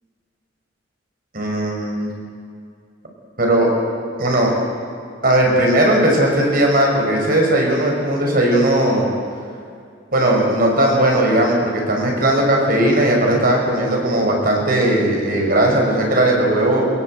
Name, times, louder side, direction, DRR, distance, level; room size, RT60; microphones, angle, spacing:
voice 1, 1.3-2.1 3.4-3.7 4.2-4.5 5.2-9.1 10.1-16.9, right 1 dB, 50° right, 0 dB, 6.2 m, -17 dB
24.0 x 22.0 x 8.1 m, 2.3 s
head